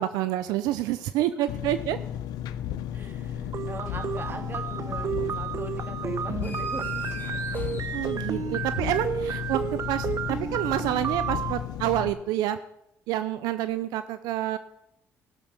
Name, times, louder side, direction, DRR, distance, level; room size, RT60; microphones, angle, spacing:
voice 1, 0.0-2.0 7.9-12.6 13.1-14.6, right 13 dB, 85° right, 12 dB, 0.5 m, -28 dB
Engine, 1.5-12.1, left 10 dB, 75° left, 0.7 m, -34 dB
voice 2, 2.9-7.2, right 3 dB, 30° right, 6 dB, 2.3 m, -41 dB
sound 1, 3.5-11.5, right 8 dB, 55° right, 0.8 m, -32 dB
sound 2, 6.4-8.9, left 3 dB, 30° left, 2.1 m, -47 dB
17.5 x 6.5 x 5.9 m, 0.79 s
supercardioid pair, 65°, 7 cm